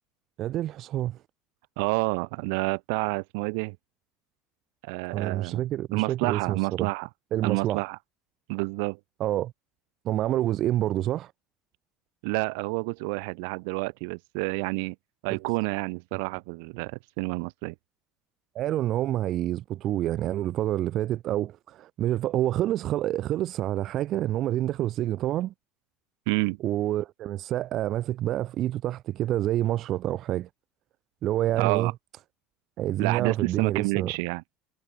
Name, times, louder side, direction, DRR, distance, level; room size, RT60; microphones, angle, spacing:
voice 1, 0.4-1.2 5.1-6.9 7.3-7.8 9.2-9.5 10.0-11.3 18.5-25.5 26.6-30.5 31.2-31.9 32.8-34.1, right 13 dB, 50° right, 3.8 m, -27 dB
voice 2, 1.8-3.8 4.8-5.6 5.9-7.1 7.4-8.0 8.5-9.0 12.2-14.9 15.2-17.7 26.3-26.6 31.6-31.9 33.0-34.4, right 33 dB, 80° right, 6.4 m, -29 dB
supercardioid pair, 115°, 0 cm